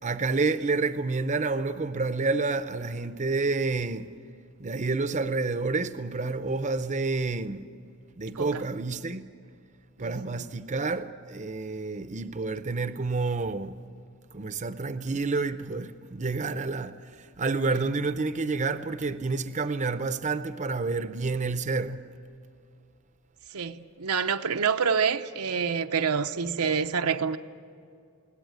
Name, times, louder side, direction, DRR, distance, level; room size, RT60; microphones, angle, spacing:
voice 1, 0.0-4.1 4.6-7.6 8.2-9.3 10.0-13.8 14.3-22.0, right 3 dB, 35° right, 0.6 m, -29 dB
voice 2, 10.0-10.4 23.5-27.4, right 6 dB, 85° right, 0.8 m, -27 dB
21.0 x 17.0 x 9.2 m
head